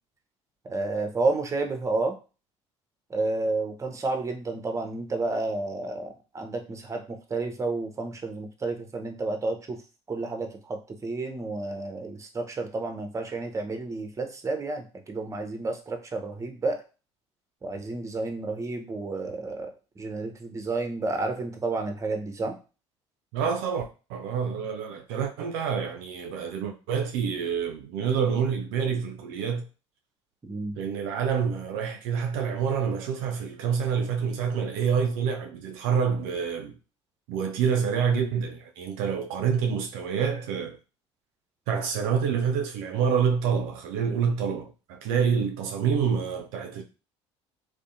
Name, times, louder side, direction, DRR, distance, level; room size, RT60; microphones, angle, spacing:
voice 1, 0.6-2.1 3.1-9.8 10.1-16.8 17.6-19.7 20.0-22.6 30.4-30.8, right 3 dB, 20° right, 0.6 m, -31 dB
voice 2, 23.3-29.7 30.8-36.8 37.3-40.8 41.7-46.8, right 7 dB, 65° right, 0.4 m, -27 dB
2.6 x 2.1 x 2.5 m
hypercardioid pair, 60°, 15 cm